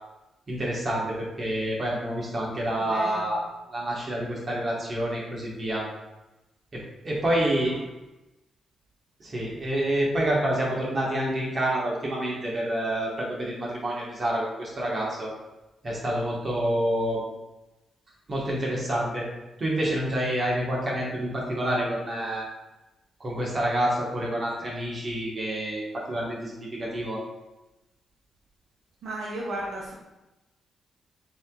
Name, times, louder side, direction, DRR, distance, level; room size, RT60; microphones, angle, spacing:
voice 1, 0.5-3.4 3.7-5.8 6.7-7.7 9.2-15.3 15.8-17.2 18.3-19.3 19.6-22.4 23.2-27.2, right 1 dB, 50° right, -4 dB, 1.5 m, -28 dB
voice 2, 2.8-3.4 7.3-7.8 29.0-29.9, right 1 dB, 70° right, -3 dB, 0.7 m, -35 dB
7.3 x 3.0 x 2.4 m, 1.0 s
hypercardioid pair, 45°, 0 cm